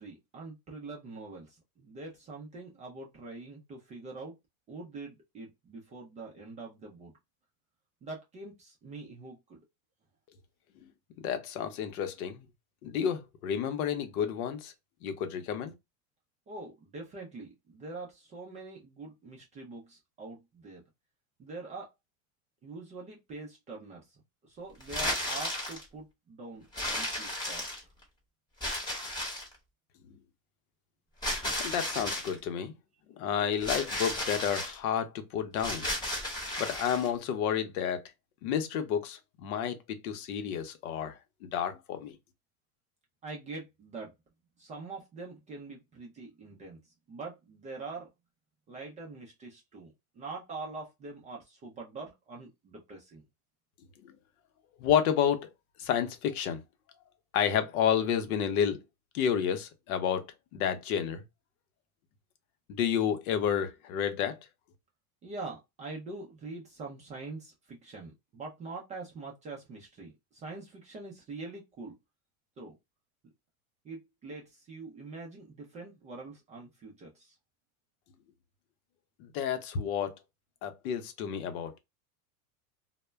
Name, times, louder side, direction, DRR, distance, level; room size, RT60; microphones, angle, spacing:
voice 1, 0.0-1.5 1.8-4.3 4.7-7.1 8.0-9.4 16.5-20.8 21.4-21.9 22.6-24.0 24.6-27.6 43.2-44.1 44.6-46.8 47.1-48.1 48.7-49.9 50.2-53.2 65.2-70.1 70.4-71.9 72.6-72.7 73.9-74.4 74.7-77.1, right 3 dB, 20° right, 0.3 m, -44 dB
voice 2, 11.2-12.5 12.8-14.7 15.0-15.7 31.6-32.7 33.2-35.9 36.6-38.0 38.4-39.8 40.0-42.1 54.0-54.1 54.8-55.5 55.8-56.6 57.3-58.8 59.1-60.2 60.5-61.2 62.7-64.4 79.2-80.1 80.6-81.8, left 8 dB, 75° left, 0.7 m, -30 dB
sound 1, 24.8-25.8 26.7-28.0 28.6-29.6 31.2-32.4 33.6-34.7 35.6-37.1, left 1 dB, 10° left, 0.8 m, -34 dB
2.1 x 2.1 x 3.2 m
supercardioid pair, 120°, 44 cm